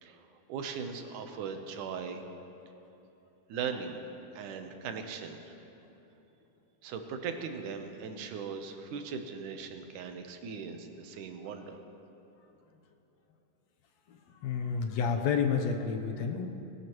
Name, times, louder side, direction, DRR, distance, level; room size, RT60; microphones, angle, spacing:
voice 1, 0.0-2.2 3.5-4.0 4.3-5.6 6.8-11.8, right 6 dB, 80° right, 6 dB, 2.5 m, -39 dB
voice 2, 14.1-16.5, left 6 dB, 70° left, 4 dB, 1.9 m, -30 dB
20.5 x 18.0 x 3.1 m, 2.9 s
omnidirectional pair, 3.5 m